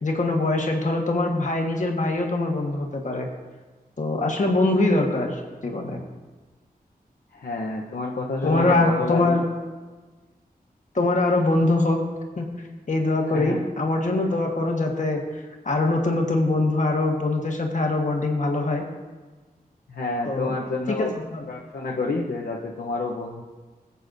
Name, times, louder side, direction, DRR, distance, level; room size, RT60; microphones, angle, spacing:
voice 1, 0.0-3.3 4.0-6.0 8.4-9.5 10.9-12.0 12.4-12.5 12.9-18.8 20.2-20.6 20.9-21.4, left 2 dB, 55° left, 1 dB, 1.4 m, -23 dB
voice 2, 7.3-9.4 13.3-13.6 19.9-21.1 21.5-23.4, left 3 dB, 85° left, -3 dB, 0.8 m, -29 dB
18.5 x 8.1 x 2.6 m, 1.3 s
wide cardioid pair, 95°, 16 cm